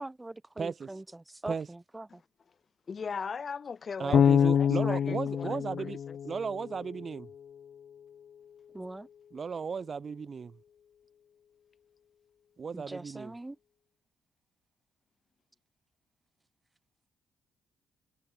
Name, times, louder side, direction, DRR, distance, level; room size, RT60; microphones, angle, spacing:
voice 1, 0.0-2.2 8.7-9.1 12.7-13.6, right 2 dB, 15° right, 3.3 m, -42 dB
voice 2, 0.6-0.9 1.5-1.7 4.0-7.3 9.3-10.6 12.6-13.3, right 5 dB, 40° right, 2.3 m, -35 dB
voice 3, 2.9-6.2, left 5 dB, 40° left, 4.3 m, -39 dB
Bass guitar, 4.1-7.1, left 8 dB, 55° left, 0.7 m, -26 dB
cardioid pair, 90°, 0 cm